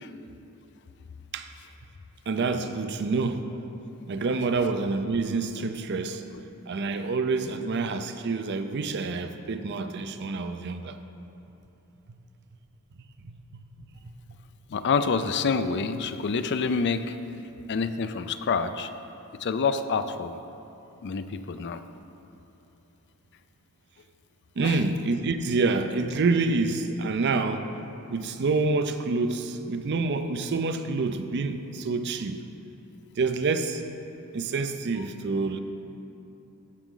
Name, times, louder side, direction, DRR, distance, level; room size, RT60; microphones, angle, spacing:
voice 1, 2.3-3.4 4.1-6.2 6.7-11.0 13.2-13.3 24.6-27.7 28.1-32.4 33.2-33.8 34.3-35.6, right 3 dB, 50° right, 9 dB, 0.5 m, -27 dB
voice 2, 14.7-17.2 17.7-18.9 19.4-20.4 21.0-21.8 24.6-24.8, left 5 dB, 50° left, 11 dB, 0.4 m, -27 dB
15.0 x 6.1 x 3.8 m, 3.0 s
head